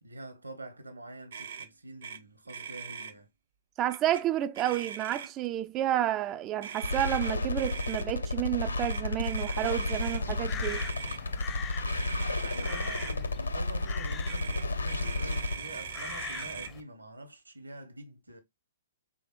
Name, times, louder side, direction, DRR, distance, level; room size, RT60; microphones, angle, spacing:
voice 1, 0.0-3.3 12.4-18.4, right 2 dB, 85° right, 1.1 m, -46 dB
Motor vehicle (road), 1.3-1.7 2.0-2.2 2.5-3.1 3.9-4.2 4.5-5.5 6.6-8.0 8.8-10.2 10.6-11.2 11.9-13.2 14.2-16.7, right 7 dB, 60° right, 0.6 m, -40 dB
voice 2, 3.8-10.8, right 12 dB, 25° right, 0.3 m, -30 dB
sound 1, 6.8-15.5, left 2 dB, 75° left, 0.6 m, -32 dB
Crow, 10.0-16.8, left 7 dB, 20° left, 0.6 m, -43 dB
4.7 x 3.4 x 3.1 m
figure-of-eight pair, 115°, 0 cm